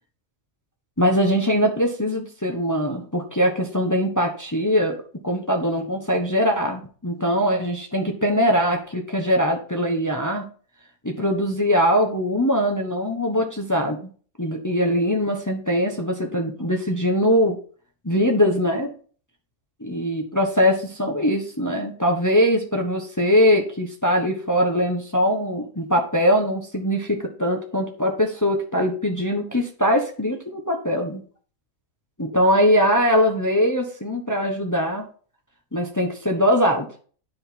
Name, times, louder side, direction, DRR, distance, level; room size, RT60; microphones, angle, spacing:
voice 1, 1.0-10.5 11.0-14.1 14.4-17.6 18.0-18.9 19.8-31.2 32.2-35.1 35.7-36.9, equal, 15° left, 2 dB, 1.1 m, -22 dB
9.9 x 5.1 x 4.3 m, 0.41 s
omnidirectional pair, 1.4 m